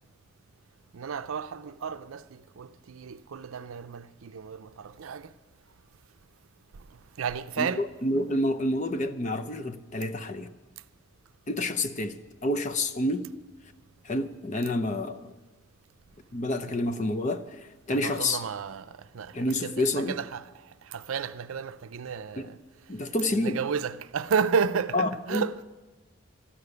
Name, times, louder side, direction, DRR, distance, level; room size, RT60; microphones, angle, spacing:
voice 1, 0.9-5.3 7.2-7.9 16.7-16.8 17.9-20.5 20.9-22.6 23.3-25.6, right 6 dB, 80° right, 0.5 m, -32 dB
voice 2, 7.6-10.5 11.5-13.3 14.0-15.3 16.3-18.4 19.3-20.2 22.4-22.5 22.9-23.6 24.9-25.4, left 1 dB, 35° left, 0.6 m, -28 dB
12.5 x 6.8 x 9.6 m
head